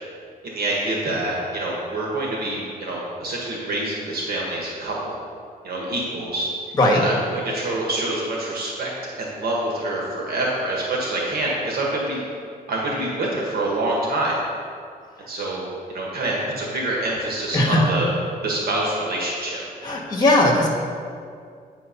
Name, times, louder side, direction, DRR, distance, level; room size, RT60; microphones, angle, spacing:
voice 1, 0.4-5.1 5.6-6.5 6.9-8.9 9.2-12.3 12.7-14.4 15.3-18.1 18.4-19.6, right 2 dB, 75° right, -3 dB, 1.5 m, -26 dB
voice 2, 17.5-17.8 19.8-20.7, left 1 dB, 25° left, -1 dB, 1.5 m, -18 dB
8.7 x 4.5 x 5.7 m, 2.3 s
wide cardioid pair, 145°, 16 cm